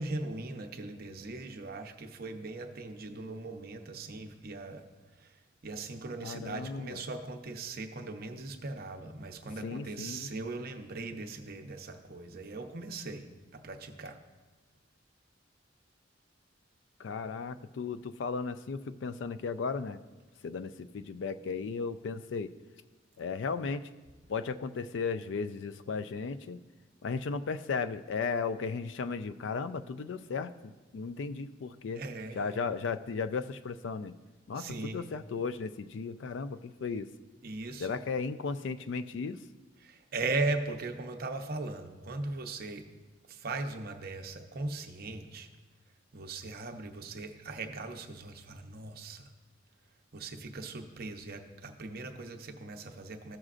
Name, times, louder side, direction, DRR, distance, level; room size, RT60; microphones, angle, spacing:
voice 1, 0.0-4.9 5.2-5.3 5.6-14.2 31.9-32.5 34.6-35.0 37.4-38.0 39.8-42.9 43.3-45.5 46.1-49.3 50.1-53.4, right 3 dB, 50° right, 5 dB, 0.7 m, -39 dB
voice 2, 6.2-7.0 9.6-10.3 17.0-20.0 20.4-22.5 23.2-23.9 24.3-26.6 27.0-32.0 32.4-34.2 34.5-37.1 37.8-39.4, left 5 dB, 65° left, 12 dB, 0.4 m, -35 dB
15.0 x 6.3 x 2.5 m, 1.3 s
head